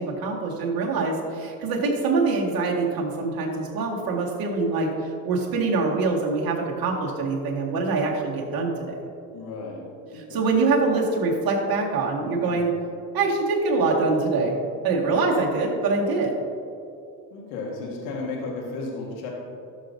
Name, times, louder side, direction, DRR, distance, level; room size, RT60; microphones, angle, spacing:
voice 1, 0.0-9.1 10.3-12.7 13.1-14.6 14.8-16.4, right 3 dB, 50° right, -2 dB, 2.1 m, -24 dB
voice 2, 9.3-10.5 12.4-12.7 17.3-19.3, left 3 dB, 75° left, -2 dB, 1.8 m, -34 dB
13.0 x 6.5 x 2.7 m, 2.6 s
hypercardioid pair, 70°, 47 cm